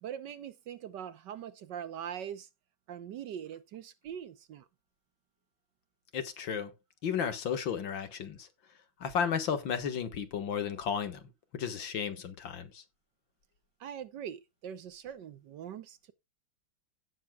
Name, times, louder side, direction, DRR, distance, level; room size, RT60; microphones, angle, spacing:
voice 1, 0.0-2.5 2.9-4.7 13.8-16.1, right 9 dB, 65° right, 1.4 m, -42 dB
voice 2, 6.1-6.7 7.0-8.5 9.0-11.2 11.5-12.8, left 7 dB, 65° left, 2.2 m, -33 dB
16.5 x 7.1 x 2.3 m
omnidirectional pair, 2.2 m